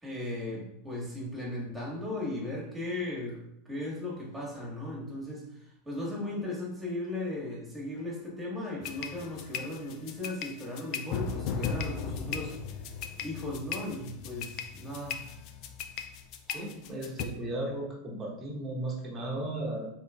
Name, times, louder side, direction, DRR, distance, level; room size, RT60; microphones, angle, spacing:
voice 1, 0.0-12.6 13.2-15.3, left 1 dB, 10° right, -4 dB, 1.5 m, -37 dB
sound 1, 8.8-17.2, left 6 dB, 50° left, 0.3 m, -37 dB
voice 2, 16.5-19.9, right 1 dB, 30° right, -2 dB, 0.9 m, -35 dB
3.7 x 3.1 x 2.3 m, 0.81 s
hypercardioid pair, 85°, 0 cm